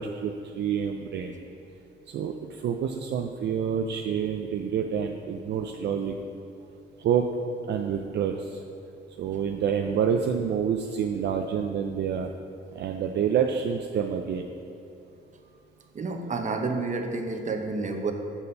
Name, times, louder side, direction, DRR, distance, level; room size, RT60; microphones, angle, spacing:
voice 1, 0.0-1.3 2.1-6.1 7.0-7.3 7.7-8.6 9.2-12.3 12.7-14.5, right 7 dB, 60° right, 4 dB, 0.4 m, -28 dB
voice 2, 15.9-18.1, right 3 dB, 40° right, 4 dB, 0.9 m, -30 dB
7.2 x 4.1 x 6.7 m, 2.8 s
cardioid pair, 90°, 20 cm